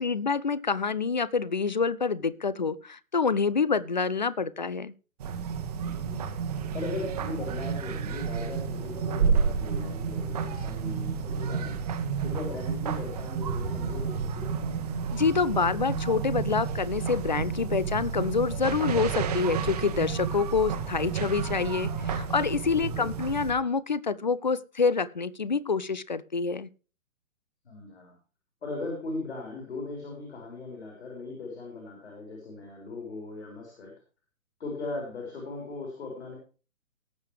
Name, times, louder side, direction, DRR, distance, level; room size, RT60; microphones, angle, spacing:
voice 1, 0.0-4.9 15.1-26.7, left 5 dB, 35° left, 19 dB, 0.4 m, -27 dB
sound 1, 5.2-23.5, right 6 dB, 30° right, 1.2 m, -31 dB
voice 2, 5.8-6.3 6.5-11.8 12.2-14.6 22.7-23.1 27.6-28.1 28.6-33.9 34.6-36.4, left 3 dB, 50° left, 0 dB, 4.3 m, -38 dB
18.0 x 7.3 x 3.2 m, 0.35 s
figure-of-eight pair, 130°, 41 cm